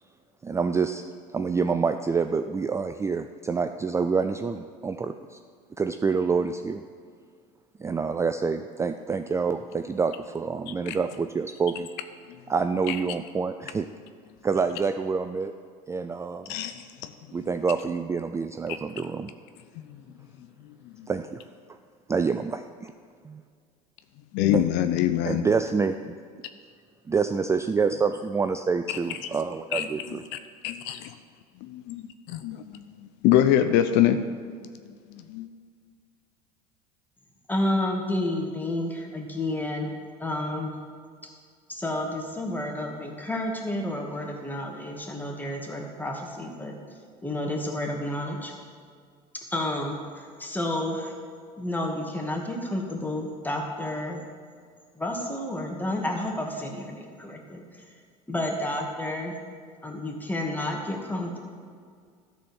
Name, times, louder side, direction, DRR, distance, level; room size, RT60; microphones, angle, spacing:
voice 1, 0.4-1.0 1.3-5.4 5.8-6.8 7.8-11.9 12.5-13.9 14.4-15.5 15.9-16.6 17.3-19.3 21.1-21.4 22.1-22.9 23.2-23.4 24.5-24.6 25.3-26.1 27.1-30.2, right 5 dB, 15° right, 8 dB, 0.3 m, -27 dB
voice 2, 16.5-17.1 19.9-20.0 20.8-21.1 24.3-25.4 29.7-29.9 30.3-30.4 30.6-31.1 31.6-34.3 35.3-35.5, left 11 dB, 60° left, 10 dB, 0.6 m, -24 dB
voice 3, 37.5-39.9 40.2-40.7 41.8-46.7 47.2-48.5 49.5-50.0 50.4-51.1 51.6-54.2 55.0-57.6 58.3-59.3 59.8-61.4, left 1 dB, 10° left, 1 dB, 1.9 m, -30 dB
13.0 x 4.3 x 7.1 m, 2.1 s
hypercardioid pair, 85°, 20 cm